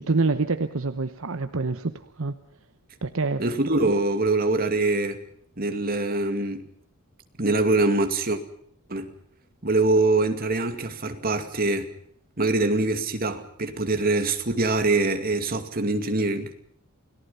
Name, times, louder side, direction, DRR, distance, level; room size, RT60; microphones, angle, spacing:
voice 1, 0.0-2.3 3.0-3.4, right 3 dB, 65° right, 1.0 m, -26 dB
voice 2, 3.4-5.2 5.6-6.6 7.4-8.4 8.9-9.1 9.6-11.9 12.4-16.5, right 2 dB, 45° right, 2.4 m, -24 dB
29.5 x 18.5 x 5.6 m
head